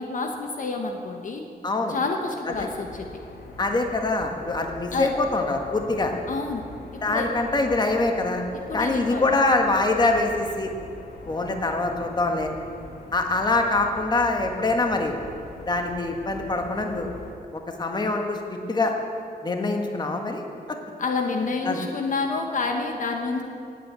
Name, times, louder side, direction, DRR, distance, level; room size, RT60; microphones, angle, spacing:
voice 1, 0.0-1.4 1.9-3.1 4.9-5.1 6.3-6.6 6.9-7.3 8.7-9.2 21.0-23.4, left 3 dB, 55° left, 3 dB, 1.2 m, -28 dB
voice 2, 1.6-2.0 2.6-2.7 3.6-6.1 7.0-8.4 8.7-10.7 11.3-12.5 13.1-15.1 15.6-17.1 17.5-18.9 19.4-20.4 21.6-21.8, left 2 dB, 25° left, 3 dB, 1.5 m, -24 dB
sound 1, 2.5-17.3, left 2 dB, 70° left, 1.9 m, -43 dB
18.0 x 8.4 x 8.2 m, 2.4 s
wide cardioid pair, 155°, 16 cm